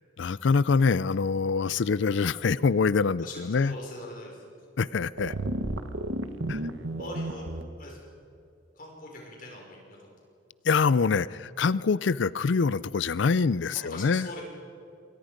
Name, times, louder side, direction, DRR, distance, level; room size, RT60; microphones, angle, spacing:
voice 1, 0.2-3.8 4.8-5.3 6.5-6.6 10.6-14.3, left 5 dB, 75° left, 19 dB, 0.4 m, -25 dB
voice 2, 3.2-4.4 7.0-7.5 7.8-8.1 8.8-10.1 13.7-14.4, left 1 dB, 45° left, -1 dB, 5.6 m, -42 dB
sound 1, 5.2-7.6, right 1 dB, 85° right, 1.3 m, -32 dB
26.5 x 22.5 x 5.2 m, 2.5 s
head